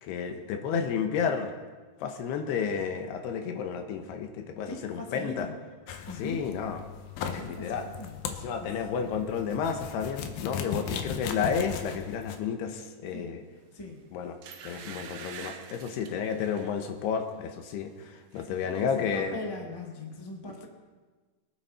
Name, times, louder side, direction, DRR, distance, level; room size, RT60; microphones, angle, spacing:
voice 1, 0.0-1.5 2.0-5.5 6.2-6.8 7.3-7.9 8.3-13.4 14.1-14.4 14.6-19.4, left 6 dB, 90° left, 5 dB, 3.2 m, -31 dB
voice 2, 4.7-5.5 6.1-6.5 7.3-8.2 8.6-8.7 9.0-9.6 10.9-11.2 13.1-13.4 13.7-14.1 14.8-15.1 18.4-20.7, left 2 dB, 35° left, 0 dB, 0.4 m, -41 dB
sound 1, 5.9-12.4, left 7 dB, 75° left, 2.6 m, -37 dB
sound 2, 13.7-13.9 14.4-16.7 17.2-17.4 17.7-18.5 18.7-18.8, right 7 dB, 70° right, 2.1 m, -46 dB
22.5 x 9.8 x 4.3 m, 1.3 s
omnidirectional pair, 4.7 m